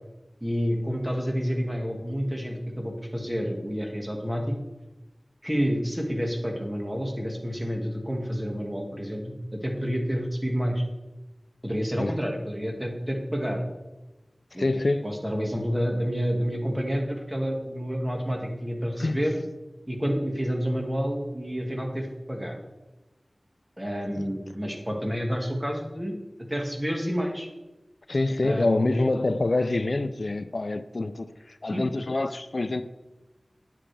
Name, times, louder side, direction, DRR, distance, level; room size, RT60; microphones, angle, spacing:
voice 1, 0.4-4.6 5.4-10.8 11.6-13.6 14.5-14.7 15.0-19.4 19.9-22.6 23.8-26.2 26.5-27.5 28.4-28.9 31.6-31.8, equal, 15° right, 1.9 m, -29 dB
voice 2, 14.6-15.1 19.0-19.2 24.1-24.3 28.1-32.8, left 2 dB, 65° left, 0.4 m, -26 dB
9.9 x 7.5 x 3.4 m
wide cardioid pair, 40°, 0 cm